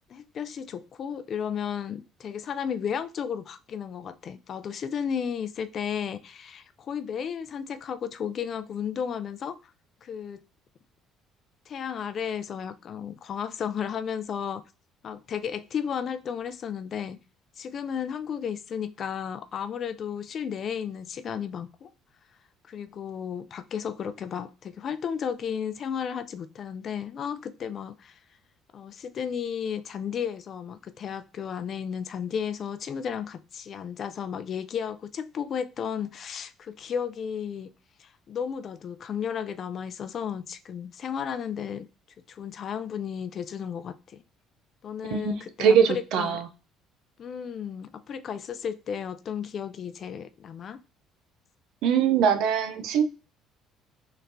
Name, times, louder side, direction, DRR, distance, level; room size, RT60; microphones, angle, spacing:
voice 1, 0.1-9.6 10.0-10.4 11.7-14.6 15.0-17.2 17.6-21.9 22.7-28.2 28.7-37.7 38.0-41.9 42.3-44.2 44.8-46.4 47.2-50.8, left 7 dB, 50° left, 0.4 m, -33 dB
voice 2, 45.6-46.4 51.8-53.0, right 7 dB, 75° right, 0.5 m, -22 dB
4.2 x 3.1 x 2.7 m
supercardioid pair, 85°, 0 cm